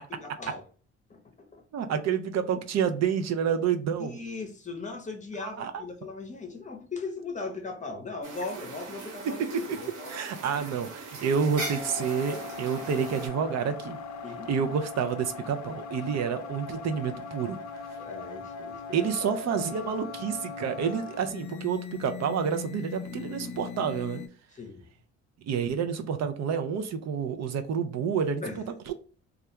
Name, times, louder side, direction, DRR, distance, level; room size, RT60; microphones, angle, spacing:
voice 1, 0.1-0.6 1.1-1.6 4.0-10.1 14.2-14.7 18.0-19.1 19.3-19.4 24.5-24.8 28.4-28.6, left 4 dB, 25° left, 0.7 m, -38 dB
voice 2, 1.7-4.2 5.4-5.7 9.2-9.5 10.1-14.0 14.5-17.6 18.9-24.2 25.4-28.4 28.9-29.0, right 7 dB, 60° right, 0.5 m, -29 dB
sound 1, 8.2-13.3, right 3 dB, 85° right, 0.9 m, -40 dB
sound 2, 11.5-24.3, left 5 dB, 70° left, 0.5 m, -40 dB
2.4 x 2.1 x 2.8 m
cardioid pair, 90°, 30 cm